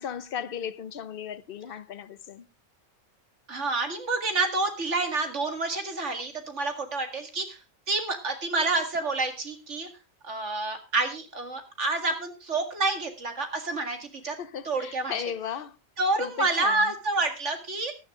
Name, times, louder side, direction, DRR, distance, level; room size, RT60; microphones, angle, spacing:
voice 1, 0.0-2.4 14.4-15.7 16.2-16.9, left 8 dB, 50° left, 0.9 m, -36 dB
voice 2, 3.5-7.6 7.9-9.9 10.2-14.4 14.6-15.2 16.0-17.9, right 3 dB, 60° right, 2.4 m, -28 dB
15.0 x 11.5 x 3.6 m
omnidirectional pair, 1.4 m